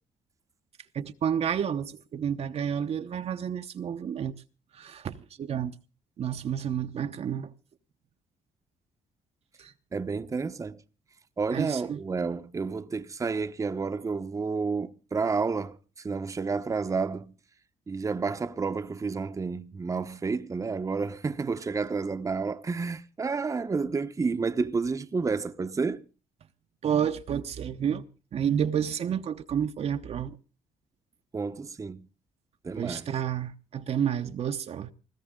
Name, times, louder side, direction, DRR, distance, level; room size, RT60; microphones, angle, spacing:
voice 1, 0.9-4.4 4.7-5.7 6.2-7.5 9.6-9.7 11.5-12.0 26.8-28.0 28.3-30.4 32.8-34.9, right 8 dB, 50° right, 1.0 m, -30 dB
voice 2, 9.9-10.8 11.4-15.8 16.0-17.3 17.9-26.0 31.3-32.1 32.6-33.1, right 4 dB, 25° right, 1.0 m, -30 dB
20.0 x 15.5 x 3.8 m
cardioid pair, 120°, 13 cm